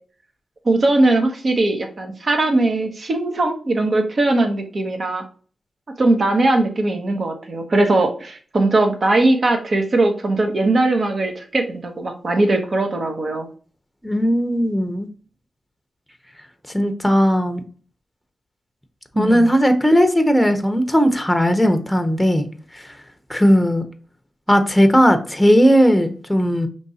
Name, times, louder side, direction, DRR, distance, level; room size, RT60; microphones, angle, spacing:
voice 1, 0.6-5.2 6.0-13.5 19.2-19.5, right 2 dB, 55° right, 4 dB, 1.1 m, -19 dB
voice 2, 14.0-15.1 16.7-17.6 19.2-22.5 22.7-22.9 23.3-23.8 24.5-26.7, equal, 5° left, 7 dB, 0.8 m, -17 dB
5.1 x 3.2 x 2.8 m, 0.41 s
cardioid pair, 65°, 0 cm